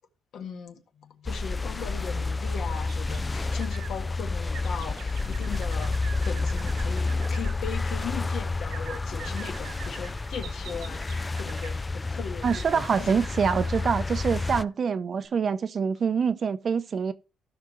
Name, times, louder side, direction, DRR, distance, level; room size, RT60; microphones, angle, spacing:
voice 1, 0.3-5.9 6.2-13.2, left 7 dB, 70° left, 1.6 m, -38 dB
sound 1, 1.3-14.6, left 3 dB, 20° left, 0.3 m, -30 dB
sound 2, 2.9-3.9 4.5-7.6 8.7-11.8 12.5-14.7 15.2-15.3, right 9 dB, 85° right, 1.0 m, -46 dB
voice 2, 12.4-17.1, right 6 dB, 50° right, 0.7 m, -25 dB
15.5 x 5.7 x 3.1 m
cardioid pair, 90°, 0 cm